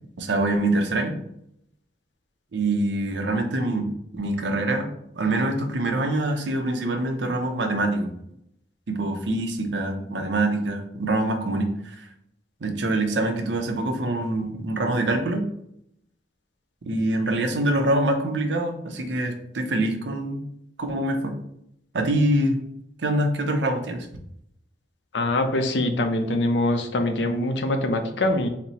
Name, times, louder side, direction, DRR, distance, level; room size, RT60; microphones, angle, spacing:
voice 1, 0.2-1.2 2.5-3.9 4.1-4.9 5.2-8.1 8.9-12.1 12.6-15.5 16.8-20.4 20.8-21.3 21.9-22.6 23.0-24.1, right 1 dB, 90° right, 5 dB, 0.6 m, -25 dB
voice 2, 25.1-28.5, left 1 dB, 85° left, 6 dB, 0.5 m, -23 dB
4.1 x 2.0 x 4.1 m, 0.75 s
head